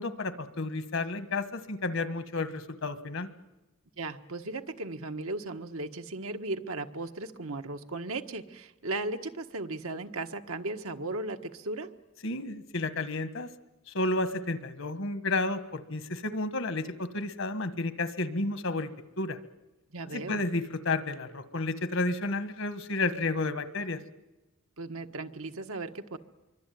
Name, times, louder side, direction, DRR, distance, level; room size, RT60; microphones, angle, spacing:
voice 1, 0.0-3.3 12.2-13.5 13.9-18.9 19.2-19.4 20.1-24.0, left 2 dB, 70° left, 11 dB, 1.6 m, -31 dB
voice 2, 4.0-11.9 19.9-20.4 24.8-26.2, right 2 dB, 80° right, 6 dB, 1.5 m, -36 dB
26.0 x 23.5 x 9.4 m, 1.0 s
head